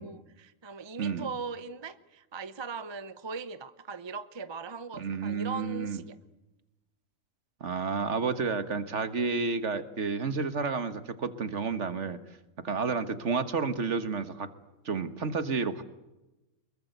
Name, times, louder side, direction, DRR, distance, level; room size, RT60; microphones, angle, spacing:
voice 1, 0.0-6.2, right 5 dB, 25° right, 13 dB, 0.8 m, -39 dB
voice 2, 1.0-1.3 5.0-6.0 7.6-12.2 12.6-14.5 14.9-15.8, right 4 dB, 55° right, 11 dB, 1.7 m, -30 dB
25.0 x 22.5 x 8.1 m, 1.0 s
omnidirectional pair, 1.4 m